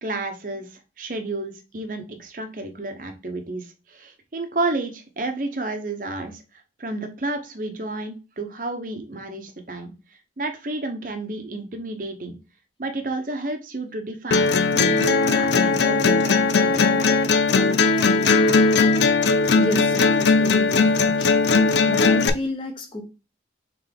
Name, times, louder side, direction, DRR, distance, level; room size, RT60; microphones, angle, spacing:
voice 1, 0.0-6.4 6.8-9.9 10.4-12.3 12.8-17.3, right 2 dB, 50° right, 0.9 m, -31 dB
sound 1, 14.3-22.3, left 4 dB, 75° left, 0.5 m, -18 dB
voice 2, 19.6-21.4 21.8-23.0, left 2 dB, 30° left, 0.9 m, -31 dB
3.8 x 3.8 x 3.5 m
head